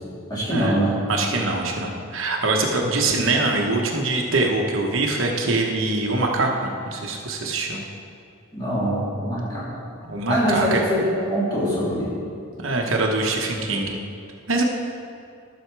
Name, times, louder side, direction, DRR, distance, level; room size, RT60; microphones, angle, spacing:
voice 1, 0.3-1.0 8.5-9.8 10.3-12.2, equal, 20° left, -8 dB, 2.9 m, -23 dB
voice 2, 1.1-7.8 10.0-10.8 12.6-14.0 14.5-14.6, right 2 dB, 70° right, 1 dB, 1.1 m, -23 dB
12.0 x 7.0 x 4.7 m, 2.4 s
head